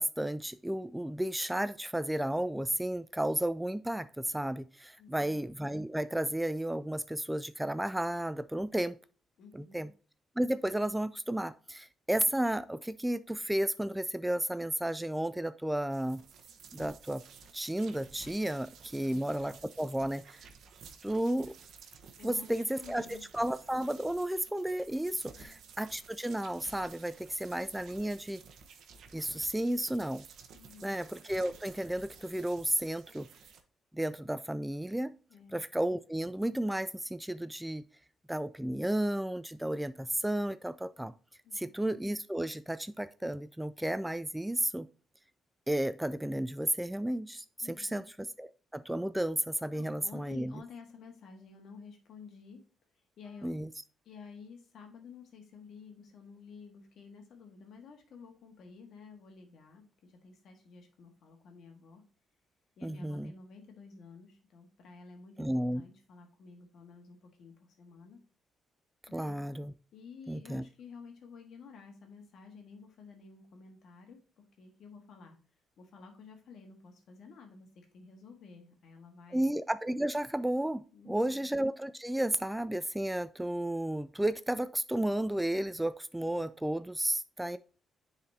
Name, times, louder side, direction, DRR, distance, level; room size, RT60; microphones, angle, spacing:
voice 1, 0.0-9.0 9.5-9.9 10.4-16.2 16.7-17.2 17.5-20.5 21.0-21.5 22.2-28.4 29.1-30.2 30.8-33.3 33.9-35.1 35.5-37.8 38.3-41.1 41.5-44.9 45.7-48.0 48.4-50.6 53.4-53.7 62.8-63.3 65.4-65.8 69.1-69.7 70.3-70.6 79.3-87.6, right 1 dB, 5° right, 14 dB, 0.3 m, -33 dB
voice 2, 5.0-5.4 9.4-9.9 19.0-19.3 22.2-23.3 25.3-25.6 30.5-31.0 35.3-35.6 41.4-41.8 47.6-48.1 49.7-52.6 53.2-53.5 54.0-62.0 62.8-68.2 69.1-69.4 69.9-74.2 74.6-75.4 75.8-79.4 80.9-81.5, left 5 dB, 70° left, 3 dB, 1.6 m, -52 dB
sound 1, 15.9-33.6, right 6 dB, 70° right, 0.9 m, -54 dB
9.7 x 4.1 x 2.8 m, 0.38 s
cardioid pair, 90°, 0 cm